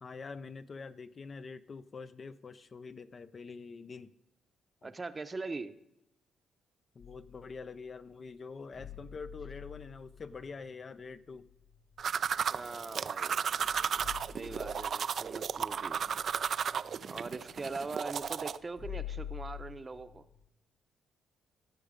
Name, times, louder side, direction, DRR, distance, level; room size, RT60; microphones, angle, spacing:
voice 1, 0.0-4.1 4.8-4.9 6.9-11.5, left 4 dB, 40° left, 12 dB, 0.5 m, -45 dB
voice 2, 4.8-5.7 12.5-13.4 14.3-16.0 17.0-20.2, right 3 dB, 25° right, 11 dB, 0.7 m, -41 dB
sound 1, 7.0-7.9 8.7-12.7 13.2-13.3 13.5-20.4, left 9 dB, 70° left, 3.5 m, -48 dB
sound 2, 12.0-18.6, right 7 dB, 55° right, 0.4 m, -34 dB
17.0 x 6.4 x 5.0 m, 0.85 s
cardioid pair, 90°, 0 cm